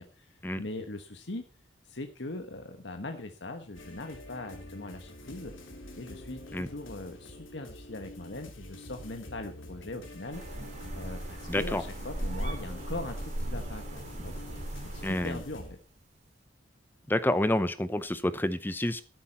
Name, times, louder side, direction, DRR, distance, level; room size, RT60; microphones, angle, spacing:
voice 1, 0.0-1.4 1.8-5.5 6.0-10.6 11.0-15.8, left 2 dB, 65° left, 6 dB, 1.4 m, -41 dB
sound 1, 3.7-15.7, left 1 dB, 90° left, 3.0 m, -47 dB
sound 2, 10.3-15.6, right 1 dB, 40° right, 2.8 m, -37 dB
voice 2, 11.5-11.8 15.0-15.4 17.1-19.0, left 1 dB, 10° left, 13 dB, 0.6 m, -28 dB
13.0 x 11.5 x 4.3 m, 0.34 s
head